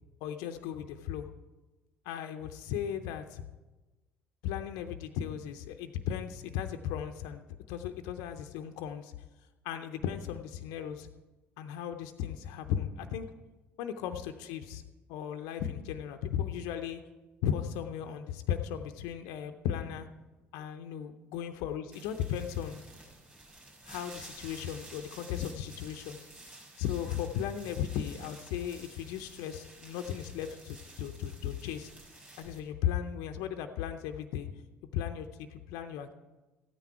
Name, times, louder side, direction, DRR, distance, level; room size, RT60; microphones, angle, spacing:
voice 1, 0.2-1.3 2.0-3.4 4.4-7.4 7.7-9.2 9.6-11.1 11.6-13.2 13.8-14.6 15.1-17.0 17.4-20.1 20.5-22.8 23.9-26.2 26.8-31.9 32.4-34.5 34.9-36.1, left 9 dB, 65° left, 7 dB, 0.6 m, -36 dB
sound 1, 21.9-32.6, right 1 dB, 20° right, 5.0 m, -52 dB
14.0 x 9.2 x 4.5 m, 1.2 s
figure-of-eight pair, 55°, 7 cm